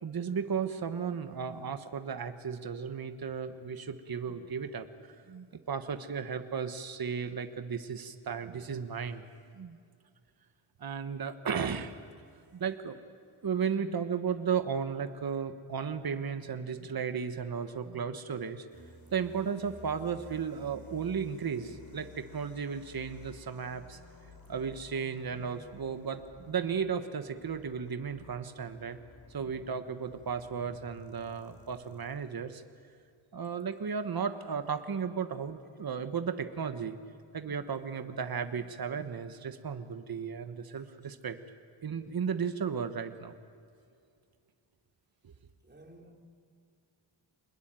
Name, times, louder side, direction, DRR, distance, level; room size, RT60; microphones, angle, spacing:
voice 1, 0.0-9.2 9.5-9.8 10.8-11.9 12.5-13.0 13.4-18.7 19.1-24.0 24.5-29.0 29.3-32.6 33.3-37.0 37.3-41.4 41.8-43.4 45.2-45.3, right 6 dB, 45° right, 8 dB, 1.4 m, -35 dB
sound 1, 18.7-32.4, left 3 dB, 45° left, 4.6 m, -54 dB
voice 2, 21.5-22.2 24.4-24.7 25.7-25.8 40.7-40.9 45.6-46.1, right 2 dB, 20° right, 0 dB, 3.9 m, -57 dB
25.5 x 21.0 x 9.1 m, 2.4 s
wide cardioid pair, 95°, 49 cm